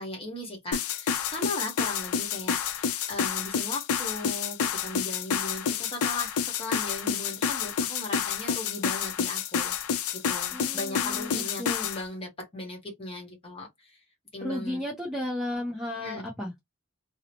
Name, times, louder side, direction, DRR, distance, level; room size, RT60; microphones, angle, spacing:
voice 1, 0.0-9.7 10.1-14.0 14.3-14.8 16.0-16.3, left 2 dB, 25° left, 1.0 m, -38 dB
sound 1, 0.7-12.0, left 7 dB, 80° left, 0.4 m, -29 dB
voice 2, 10.5-11.9 14.4-16.5, left 1 dB, ahead, 0.5 m, -34 dB
2.7 x 2.0 x 2.8 m
head